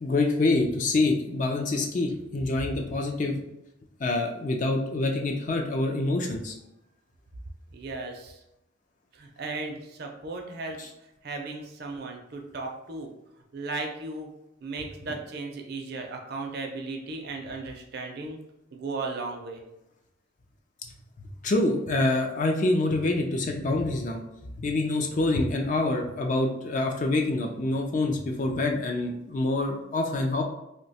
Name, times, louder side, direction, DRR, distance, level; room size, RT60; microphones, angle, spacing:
voice 1, 0.0-3.4 4.0-6.5 10.8-10.9 21.4-24.2 24.5-30.4, left 2 dB, 40° left, 2 dB, 0.4 m, -26 dB
voice 2, 7.7-8.4 9.1-10.9 11.2-13.1 13.5-14.3 14.6-18.4 18.7-19.6, right 3 dB, 50° right, 2 dB, 0.5 m, -36 dB
2.7 x 2.2 x 4.0 m, 0.88 s
head